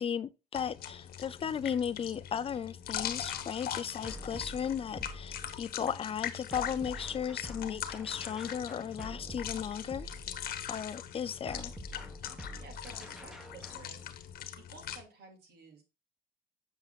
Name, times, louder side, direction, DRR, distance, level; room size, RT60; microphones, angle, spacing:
voice 1, 0.0-10.1 10.7-11.7, left 8 dB, 35° left, 0.4 m, -35 dB
sound 1, 0.5-15.0, left 10 dB, 60° left, 1.0 m, -41 dB
sound 2, 4.0-5.8 6.5-10.7 11.5-13.9, equal, 5° right, 1.2 m, -46 dB
voice 2, 12.6-15.8, right 4 dB, 70° right, 2.4 m, -54 dB
7.3 x 6.9 x 2.4 m
cardioid pair, 110°, 17 cm